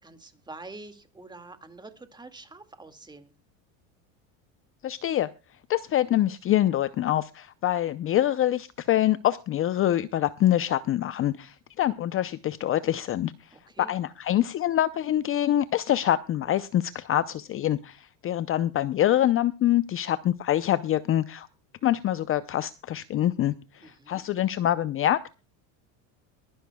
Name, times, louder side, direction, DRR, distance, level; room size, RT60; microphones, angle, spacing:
voice 1, 0.0-3.3 13.5-13.9 23.8-24.2, right 2 dB, 10° right, 8 dB, 2.0 m, -46 dB
voice 2, 4.8-5.3 5.7-13.5 13.8-21.5 21.8-25.3, left 12 dB, 35° left, 14 dB, 0.6 m, -25 dB
23.0 x 11.0 x 2.2 m, 0.29 s
supercardioid pair, 125°, 39 cm